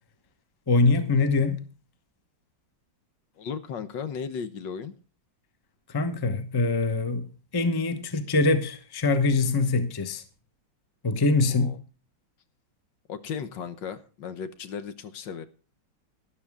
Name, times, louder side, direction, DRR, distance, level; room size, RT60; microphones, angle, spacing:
voice 1, 0.7-1.6 5.9-7.3 7.5-10.2 11.0-11.8, left 3 dB, 20° left, 0.7 m, -23 dB
voice 2, 3.4-5.0 11.5-11.8 13.1-15.5, left 6 dB, 70° left, 1.6 m, -35 dB
12.5 x 11.5 x 3.6 m
omnidirectional pair, 2.1 m